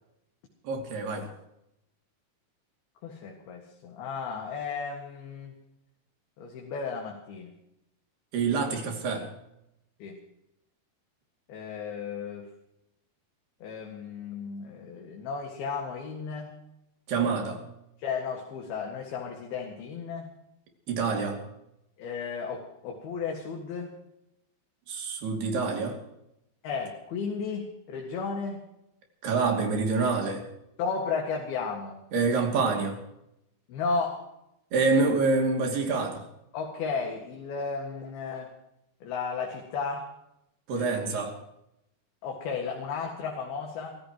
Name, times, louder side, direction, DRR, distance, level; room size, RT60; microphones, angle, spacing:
voice 1, 0.6-1.3 8.3-9.3 17.1-17.6 20.9-21.4 24.9-26.0 29.2-30.4 32.1-33.0 34.7-36.2 40.7-41.4, right 4 dB, 70° right, 2 dB, 4.7 m, -26 dB
voice 2, 3.0-5.5 6.4-7.5 10.0-10.2 11.5-12.5 13.6-16.6 18.0-20.3 22.0-23.9 26.6-28.6 30.8-32.0 33.7-34.3 36.5-38.5 39.0-40.1 40.7-41.3 42.2-44.0, left 5 dB, 70° left, 0 dB, 3.7 m, -34 dB
27.5 x 15.5 x 3.1 m, 0.83 s
omnidirectional pair, 4.8 m